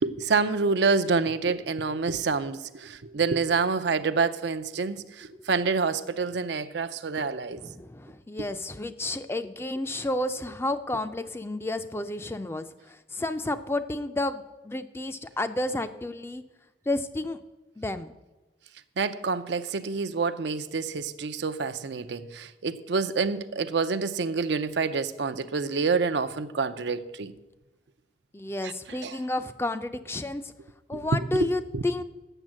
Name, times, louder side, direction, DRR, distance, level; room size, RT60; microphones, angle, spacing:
voice 1, 0.0-7.6 19.0-27.3 28.6-28.7 29.0-29.2 30.9-31.0 31.3-31.5 31.7-31.8, right 4 dB, 75° right, 0.5 m, -27 dB
voice 2, 7.6-16.4 16.9-17.4 17.8-18.1 28.3-30.5 30.9-32.0, left 2 dB, 15° left, 0.4 m, -31 dB
9.0 x 7.1 x 7.4 m
head